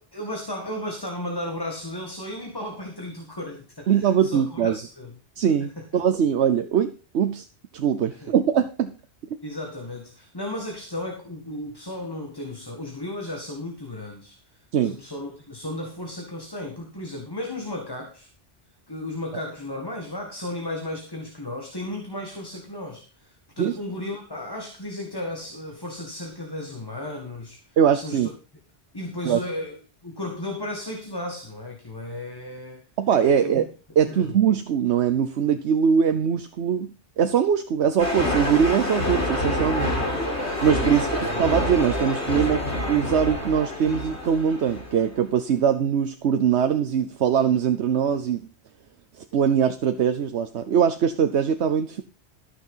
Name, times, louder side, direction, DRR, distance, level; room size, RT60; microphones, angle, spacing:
voice 1, 0.0-5.1 5.8-6.0 8.1-8.3 9.4-18.3 18.9-28.3 28.9-32.8 33.2-33.7 34.0-34.4 40.8-41.4, left 1 dB, 20° left, 2 dB, 1.9 m, -34 dB
voice 2, 3.9-4.8 5.4-7.5 7.7-8.9 14.7-15.0 23.6-23.8 27.8-28.3 29.2-29.4 33.0-33.7 34.0-39.9 40.6-41.1 41.4-42.6 42.9-48.4 49.2-52.0, right 8 dB, 85° right, 8 dB, 1.1 m, -22 dB
sound 1, 38.0-45.1, left 1 dB, 85° left, 3.5 m, -27 dB
13.5 x 6.5 x 5.5 m, 0.34 s
omnidirectional pair, 1.1 m